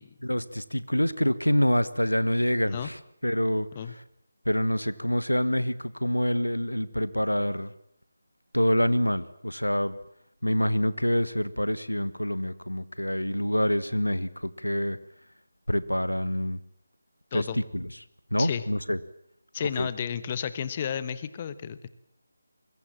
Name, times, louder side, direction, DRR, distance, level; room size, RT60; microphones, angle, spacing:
voice 1, 0.2-3.7 4.5-7.7 8.5-10.0 10.4-15.0 15.7-16.6 17.3-17.9 18.3-19.0 19.8-19.9, equal, 90° left, 16 dB, 1.5 m, -26 dB
voice 2, 19.5-21.9, left 8 dB, 25° left, 15 dB, 1.2 m, -32 dB
24.5 x 22.5 x 7.6 m, 0.70 s
figure-of-eight pair, 160°, 0 cm